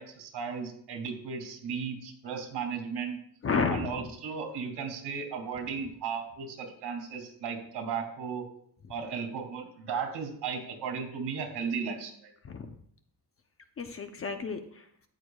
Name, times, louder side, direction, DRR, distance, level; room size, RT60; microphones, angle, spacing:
voice 1, 0.0-3.2 3.7-8.4 8.9-12.3, right 6 dB, 70° right, 3 dB, 2.6 m, -35 dB
voice 2, 3.4-4.1 12.4-12.7 13.8-14.8, left 4 dB, 35° left, 7 dB, 0.7 m, -31 dB
13.5 x 9.8 x 2.4 m, 0.65 s
cardioid pair, 160°, 41 cm